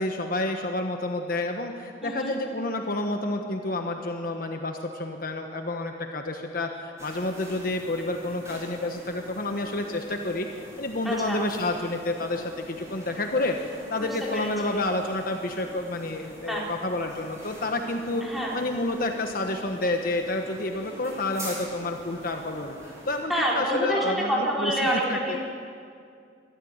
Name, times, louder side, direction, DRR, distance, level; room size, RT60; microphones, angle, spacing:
voice 1, 0.0-18.2 18.5-22.8 23.1-24.7 25.1-25.4, left 2 dB, 50° left, 4 dB, 1.3 m, -29 dB
voice 2, 2.0-2.3 11.0-11.4 14.0-14.9 16.5-16.7 18.2-18.6 23.3-25.4, equal, ahead, -5 dB, 4.0 m, -28 dB
sound 1, 7.0-23.2, equal, 15° right, 6.7 m, -45 dB
22.0 x 14.0 x 8.8 m, 2.3 s
head